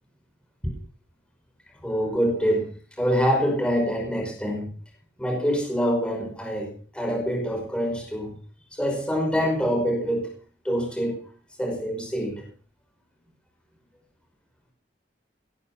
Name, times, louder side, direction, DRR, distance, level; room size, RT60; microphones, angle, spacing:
voice 1, 1.8-4.7 5.2-8.4 8.7-10.3 10.6-11.2 11.6-12.5, equal, 5° left, 1 dB, 5.1 m, -25 dB
18.0 x 13.5 x 5.8 m, 0.40 s
head